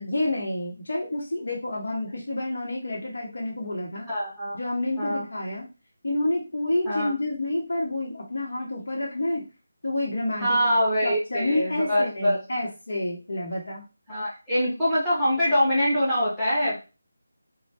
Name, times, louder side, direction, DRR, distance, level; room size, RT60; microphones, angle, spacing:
voice 1, 0.0-4.1 4.5-5.7 6.0-9.4 9.8-10.6 11.0-13.8 16.6-16.8, left 1 dB, 65° left, -2 dB, 0.9 m, -29 dB
voice 2, 4.1-4.6 5.0-5.3 6.8-7.1 10.4-12.4 14.1-16.8, equal, ahead, -10 dB, 1.2 m, -24 dB
3.1 x 2.1 x 2.8 m, 0.31 s
figure-of-eight pair, 165°, 0 cm